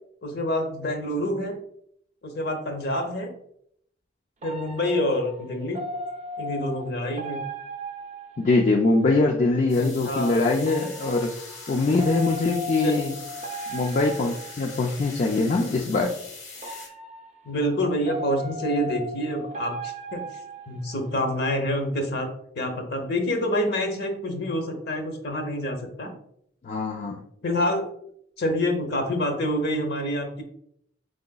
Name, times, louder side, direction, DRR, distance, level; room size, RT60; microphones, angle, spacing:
voice 1, 0.2-1.5 2.2-3.3 4.4-5.8 6.4-7.4 9.8-10.4 12.8-12.9 17.4-20.2 20.7-22.3 22.6-26.1 27.4-27.9 28.4-30.4, left 1 dB, 55° left, 5 dB, 0.8 m, -27 dB
sound 1, 4.4-9.0 10.6-15.2 16.6-21.2, right 1 dB, 35° right, 0.5 m, -37 dB
voice 2, 8.4-11.3 11.7-13.2 13.7-16.2 26.6-27.2, left 3 dB, 40° left, 1 dB, 0.3 m, -23 dB
sound 2, 9.7-16.9, left 4 dB, 75° left, 1.3 m, -42 dB
4.9 x 3.8 x 2.2 m, 0.70 s
head